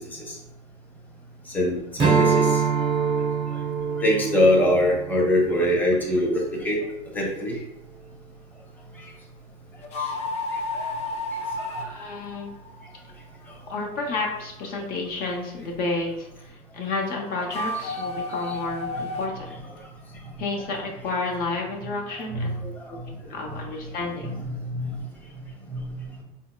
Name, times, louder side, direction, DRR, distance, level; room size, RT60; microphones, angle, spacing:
voice 1, 1.5-2.6 4.0-6.8 7.1-7.6 10.7-10.9 11.6-11.8 22.3-22.5 22.9-23.1 23.5-23.6 24.2-25.0 25.4-26.2, left 1 dB, 10° left, -2 dB, 0.8 m, -24 dB
Strum, 2.0-6.7, right 6 dB, 30° right, 0.5 m, -25 dB
sound 1, 9.8-13.1 17.4-19.6, left 2 dB, 40° left, 0.4 m, -31 dB
voice 2, 11.8-12.5 13.7-19.5 20.4-24.3, left 3 dB, 60° left, 0 dB, 0.8 m, -31 dB
4.0 x 2.7 x 2.2 m, 0.82 s
supercardioid pair, 110°, 17 cm